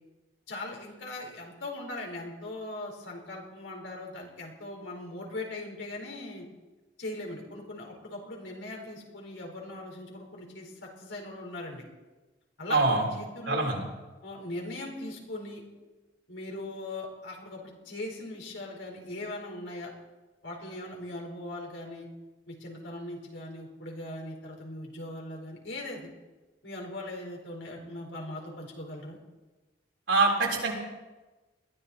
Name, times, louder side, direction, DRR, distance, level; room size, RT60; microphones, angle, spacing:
voice 1, 0.5-6.4 7.0-11.8 12.6-13.7 14.2-15.6 16.3-19.9 20.4-22.1 22.5-26.1 26.6-29.2, left 2 dB, 90° left, -1 dB, 4.6 m, -40 dB
voice 2, 12.7-13.0 13.5-13.8 30.1-30.7, right 3 dB, 80° right, -1 dB, 4.1 m, -24 dB
21.0 x 14.5 x 4.4 m, 1.2 s
head